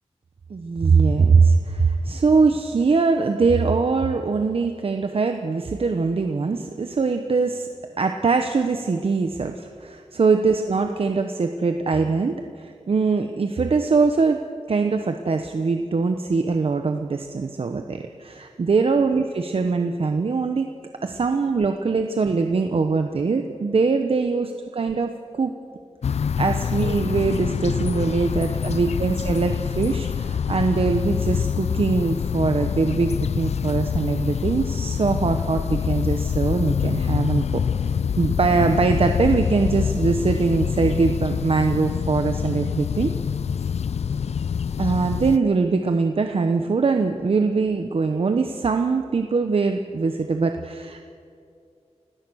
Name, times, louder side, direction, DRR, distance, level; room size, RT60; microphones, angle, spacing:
voice 1, 0.5-7.7 8.0-14.4 14.7-20.7 21.0-25.5 26.1-43.1 44.8-51.0, right 4 dB, 55° right, 6 dB, 1.0 m, -22 dB
sound 1, 26.0-45.4, left 7 dB, 70° left, 0.4 m, -25 dB
29.5 x 17.0 x 6.4 m, 2.5 s
wide cardioid pair, 115°, 11 cm